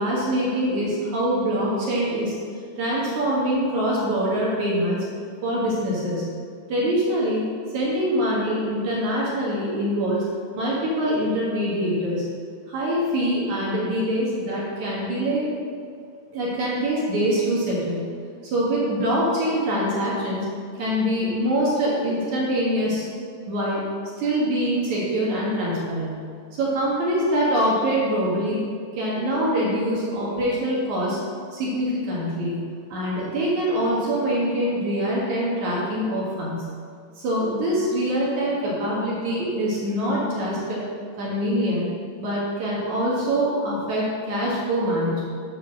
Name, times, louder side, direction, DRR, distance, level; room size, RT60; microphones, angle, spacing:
voice 1, 0.0-2.3 2.8-5.0 5.4-6.3 6.7-10.2 10.5-12.3 12.7-15.5 16.3-18.1 18.4-20.5 20.8-23.1 23.5-23.9 24.2-26.1 26.5-28.6 28.9-31.2 31.5-36.7 37.2-40.8 41.2-41.9 42.2-45.2, equal, 60° right, -6 dB, 2.3 m, -24 dB
8.5 x 4.4 x 6.3 m, 2.2 s
omnidirectional pair, 4.6 m